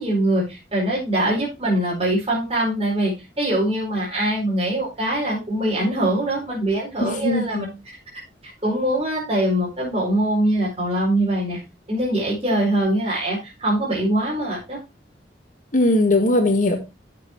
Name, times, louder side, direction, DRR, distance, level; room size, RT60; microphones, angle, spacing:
voice 1, 0.0-7.7 8.6-11.6 11.9-14.8, right 1 dB, 35° right, -6 dB, 4.6 m, -23 dB
voice 2, 7.0-7.7 15.7-16.8, left 2 dB, 45° left, 5 dB, 1.6 m, -19 dB
10.5 x 7.5 x 3.1 m, 0.25 s
head